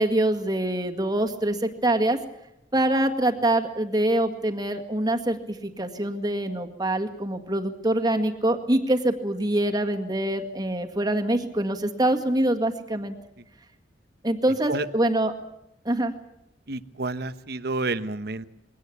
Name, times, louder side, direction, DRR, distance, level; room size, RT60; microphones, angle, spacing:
voice 1, 0.0-2.2 2.7-13.1 14.2-15.3 15.9-16.1, right 1 dB, 20° right, 4 dB, 1.9 m, -24 dB
voice 2, 16.7-18.5, right 3 dB, 60° right, 13 dB, 1.1 m, -29 dB
22.5 x 18.0 x 8.5 m, 0.85 s
head